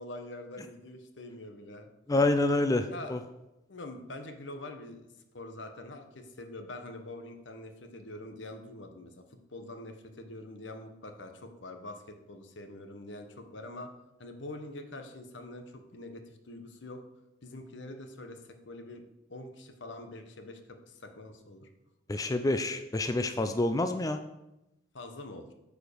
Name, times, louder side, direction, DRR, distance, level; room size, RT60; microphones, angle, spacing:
voice 1, 0.0-1.9 2.9-3.2 3.7-5.1 5.3-9.2 9.5-13.9 14.2-17.0 17.4-19.0 19.3-21.7 24.9-25.5, left 2 dB, 75° left, 6 dB, 1.2 m, -44 dB
voice 2, 2.1-3.2 22.1-24.2, left 2 dB, 20° left, 8 dB, 0.4 m, -27 dB
9.0 x 4.9 x 6.7 m, 0.93 s
head